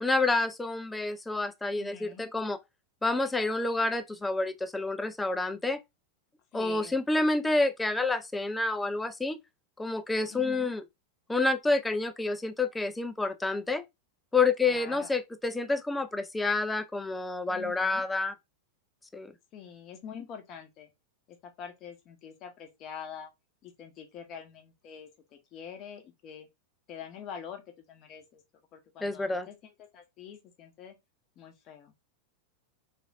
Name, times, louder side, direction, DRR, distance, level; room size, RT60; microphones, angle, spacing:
voice 1, 0.0-2.6 3.0-5.8 6.5-9.4 9.8-10.8 11.3-13.8 14.3-18.3 19.1-19.3 29.0-29.5, left 3 dB, 10° left, 0.3 m, -28 dB
voice 2, 1.7-2.3 6.5-7.0 10.3-10.7 14.7-15.1 17.5-18.0 19.5-20.9 21.3-23.3 23.6-25.1 25.5-26.5 26.9-27.6 27.9-28.4 28.7-29.6 29.9-31.0 31.4-31.9, left 7 dB, 35° left, 0.7 m, -45 dB
3.1 x 2.4 x 2.3 m
figure-of-eight pair, 90°, 0 cm